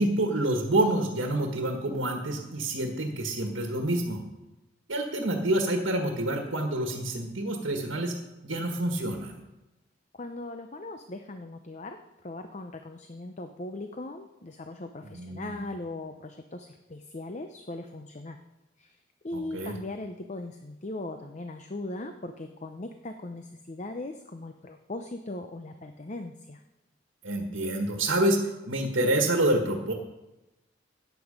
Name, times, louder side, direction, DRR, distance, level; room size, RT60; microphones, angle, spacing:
voice 1, 0.0-4.2 4.9-8.2 8.4-9.4 15.0-15.6 19.3-19.8 27.2-28.4 28.7-29.9, right 1 dB, 80° right, 3 dB, 1.6 m, -27 dB
voice 2, 10.1-12.0 12.2-18.4 18.8-19.0 19.2-26.6, left 2 dB, 35° left, 6 dB, 0.7 m, -39 dB
14.0 x 9.2 x 5.2 m, 0.99 s
head